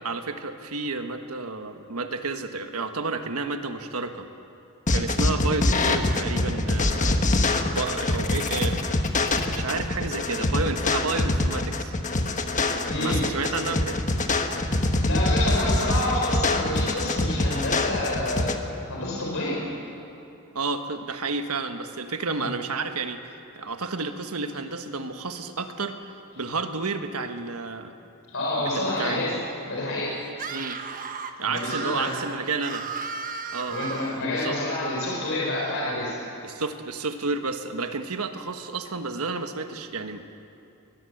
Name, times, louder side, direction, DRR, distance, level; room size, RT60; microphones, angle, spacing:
voice 1, 0.0-4.3 4.9-7.3 7.7-8.9 9.5-11.9 13.0-14.0 20.5-26.0 26.4-27.9 28.6-29.5 30.5-30.8 31.4-32.9 33.5-33.8 34.3-34.6 36.4-40.3, right 3 dB, 75° right, 7 dB, 1.4 m, -31 dB
sound 1, 4.9-18.6, left 2 dB, 35° left, 1.3 m, -24 dB
voice 2, 12.9-13.2 15.0-18.6 18.9-19.6 28.3-29.4 29.7-30.1 31.4-32.1 33.7-36.2, left 1 dB, 65° left, -3 dB, 4.4 m, -28 dB
Screaming, 30.3-34.3, right 6 dB, 40° right, 1.1 m, -34 dB
20.5 x 20.0 x 7.9 m, 2.7 s
head